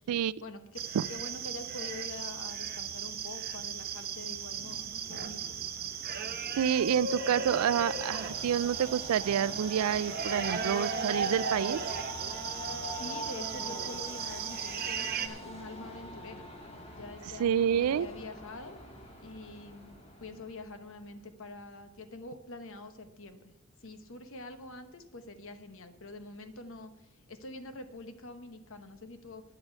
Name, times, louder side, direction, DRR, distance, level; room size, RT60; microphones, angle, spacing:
voice 1, 0.4-5.6 12.9-16.5 17.0-18.8 19.2-23.5 23.8-29.4, left 2 dB, 65° left, 9 dB, 1.1 m, -46 dB
sound 1, 0.7-15.3, right 6 dB, 45° right, 1.0 m, -36 dB
sound 2, 4.9-20.6, equal, 10° left, 1.5 m, -57 dB
voice 2, 6.6-11.8 17.4-18.1, right 9 dB, 85° right, 20 dB, 0.3 m, -28 dB
Train, 7.5-20.9, left 1 dB, 30° left, 1.7 m, -44 dB
9.6 x 8.1 x 8.2 m, 0.98 s
head